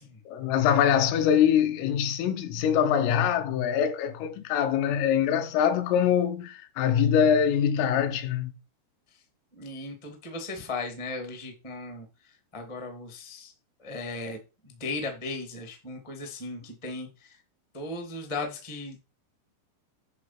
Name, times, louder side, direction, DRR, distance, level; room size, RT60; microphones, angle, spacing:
voice 1, 0.3-8.5, left 8 dB, 80° left, 3.7 m, -24 dB
voice 2, 9.5-12.0 12.5-13.5 13.8-14.4 14.6-17.3 17.7-19.0, left 3 dB, 45° left, 0.4 m, -36 dB
10.5 x 4.2 x 6.1 m
omnidirectional pair, 5.9 m